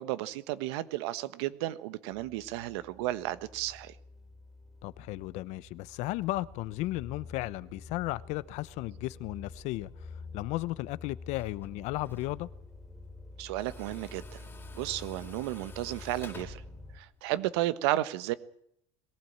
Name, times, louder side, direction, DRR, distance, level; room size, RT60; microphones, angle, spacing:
voice 1, 0.0-4.0 13.4-14.4 14.7-16.6 16.9-18.3, right 15 dB, 85° right, 1.3 m, -33 dB
sound 1, 2.1-17.0, left 3 dB, ahead, 3.0 m, -48 dB
voice 2, 4.8-9.9 10.3-12.5, left 18 dB, 60° left, 0.9 m, -35 dB
Tools, 11.4-17.6, left 4 dB, 20° left, 2.9 m, -52 dB
21.5 x 15.5 x 8.8 m
cardioid pair, 140°, 13 cm